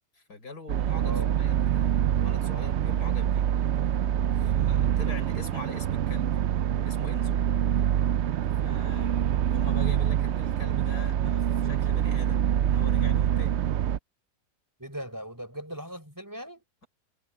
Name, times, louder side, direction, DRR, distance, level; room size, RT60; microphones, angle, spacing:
voice 1, 0.1-3.5 4.4-6.3 6.8-7.4 8.6-13.6, left 2 dB, 75° left, 6.6 m, -43 dB
sound 1, 0.7-14.0, right 10 dB, 65° right, 0.7 m, -25 dB
voice 2, 1.0-1.4 14.8-16.6, equal, 10° right, 4.9 m, -39 dB
omnidirectional pair, 1.7 m